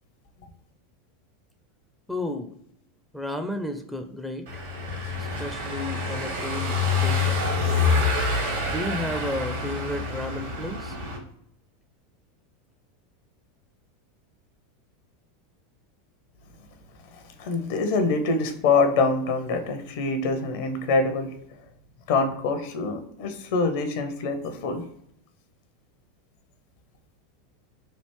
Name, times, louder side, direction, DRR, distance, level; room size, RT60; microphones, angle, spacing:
voice 1, 2.1-2.5 3.1-4.6 5.2-7.3 8.7-11.0, left 1 dB, ahead, 6 dB, 0.4 m, -33 dB
Car passing by / Engine, 4.5-11.2, left 4 dB, 65° right, 1.1 m, -26 dB
sound 1, 4.7-10.8, right 2 dB, 90° left, 0.8 m, -44 dB
voice 2, 17.4-21.3 22.1-24.8, left 3 dB, 60° left, 7 dB, 0.6 m, -25 dB
3.3 x 2.4 x 3.1 m, 0.72 s
figure-of-eight pair, 85°, 0 cm